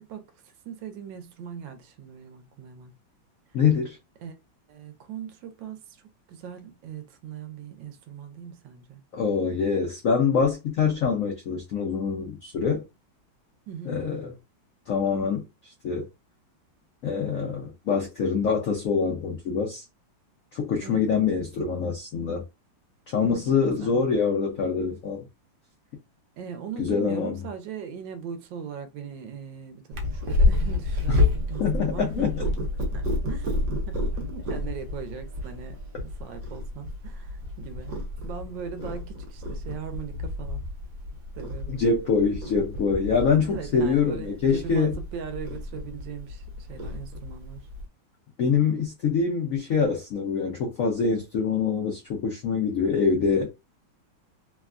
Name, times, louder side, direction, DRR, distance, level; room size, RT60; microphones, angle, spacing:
voice 1, 0.0-2.9 4.2-4.3 4.7-6.0 6.3-9.0 13.7-14.0 20.8-21.2 23.2-23.4 23.8-24.0 26.4-32.3 32.9-40.6 41.3-41.8 43.4-47.7, right 7 dB, 75° right, 1.2 m, -39 dB
voice 2, 3.5-4.0 9.1-12.8 13.9-14.3 14.9-16.1 17.0-19.8 20.5-22.5 23.1-25.3 26.8-27.4 31.1-31.2 31.6-32.3 41.7-45.0 48.4-53.5, left 5 dB, 75° left, 0.7 m, -25 dB
Purr, 29.9-47.8, left 2 dB, 60° right, 1.0 m, -30 dB
3.3 x 2.2 x 2.4 m
omnidirectional pair, 2.1 m